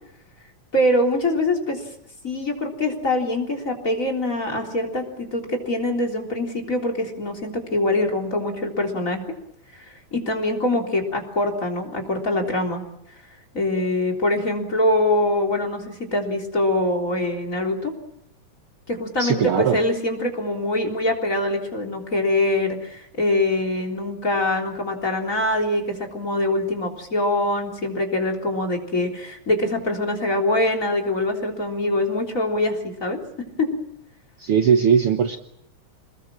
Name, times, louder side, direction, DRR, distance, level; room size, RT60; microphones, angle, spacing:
voice 1, 0.7-1.8 2.2-9.2 9.7-12.8 13.5-17.9 18.9-33.2, left 1 dB, 25° left, 6 dB, 3.9 m, -24 dB
voice 2, 19.2-19.8 34.4-35.4, right 7 dB, 60° right, 6 dB, 1.8 m, -19 dB
27.0 x 21.0 x 7.4 m, 0.76 s
omnidirectional pair, 3.4 m